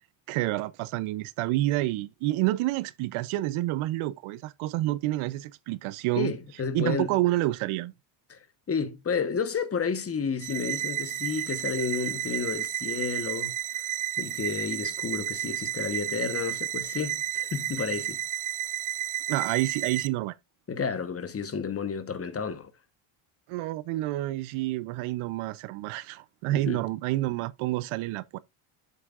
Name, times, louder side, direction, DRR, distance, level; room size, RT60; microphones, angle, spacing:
voice 1, 0.3-6.3 6.7-7.9 19.3-20.4 23.5-28.4, right 17 dB, 80° right, 0.8 m, -28 dB
voice 2, 6.1-7.1 8.3-8.4 8.7-13.9 14.2-18.2 20.7-22.7 26.5-26.8, left 5 dB, 30° left, 1.2 m, -31 dB
sound 1, 10.4-20.1, right 13 dB, 40° right, 0.5 m, -32 dB
8.1 x 7.5 x 2.5 m
cardioid pair, 105°, 48 cm